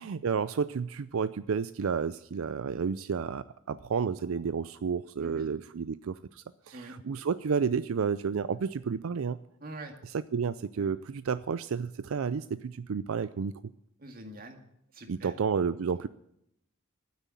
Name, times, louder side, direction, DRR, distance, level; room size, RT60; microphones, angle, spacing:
voice 1, 0.0-9.4 10.0-13.5 15.1-16.1, right 6 dB, 85° right, 14 dB, 0.4 m, -31 dB
voice 2, 9.6-9.9 10.8-10.9 14.0-14.6 14.9-15.3, right 1 dB, 45° right, 5 dB, 2.1 m, -44 dB
12.0 x 9.7 x 8.4 m, 0.78 s
head